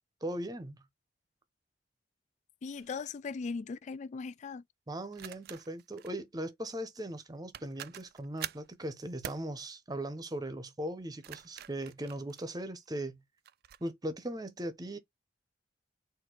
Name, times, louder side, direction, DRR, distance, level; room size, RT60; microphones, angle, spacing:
voice 1, 0.2-0.8 4.9-13.2 13.8-15.0, right 1 dB, 20° right, 0.8 m, -39 dB
voice 2, 2.6-4.6, left 4 dB, 40° left, 0.3 m, -39 dB
sound 1, 2.8-3.0 5.1-6.2 7.2-7.3 7.5-8.7 9.2-9.5 11.0-12.9 13.5-13.8, right 11 dB, 55° right, 0.3 m, -45 dB
4.3 x 2.6 x 4.4 m
head